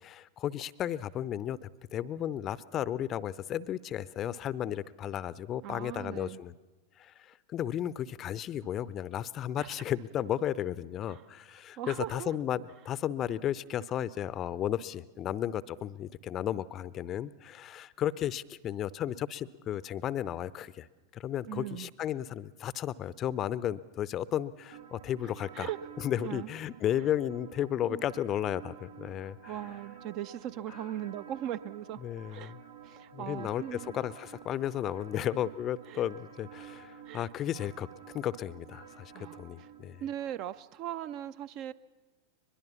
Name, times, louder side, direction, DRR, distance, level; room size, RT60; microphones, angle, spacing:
voice 1, 0.0-6.5 7.0-20.9 21.1-25.7 26.0-29.5 32.0-32.6 33.1-37.9 38.1-40.0, left 11 dB, 30° left, 19 dB, 0.6 m, -34 dB
voice 2, 5.6-6.4 9.6-9.7 11.1-11.2 11.8-12.3 21.5-21.9 25.5-25.8 26.2-26.5 27.9-28.0 29.5-32.0 32.3-32.5 32.8-34.0 35.9-36.0 37.1-37.3 39.1-39.7 40.0-41.7, right 11 dB, 40° right, 14 dB, 0.7 m, -39 dB
sound 1, 24.7-40.6, right 7 dB, 75° right, 1.6 m, -51 dB
22.5 x 21.5 x 7.0 m, 1.3 s
figure-of-eight pair, 90°, 0 cm